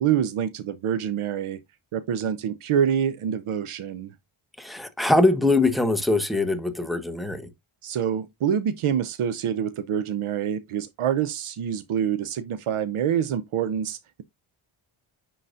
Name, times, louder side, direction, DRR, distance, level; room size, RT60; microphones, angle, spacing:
voice 1, 0.0-1.6 1.9-4.1 7.8-14.2, right 9 dB, 80° right, 0.7 m, -26 dB
voice 2, 4.6-7.5, left 2 dB, ahead, 0.9 m, -22 dB
9.8 x 3.9 x 2.5 m
wide cardioid pair, 110°, 50 cm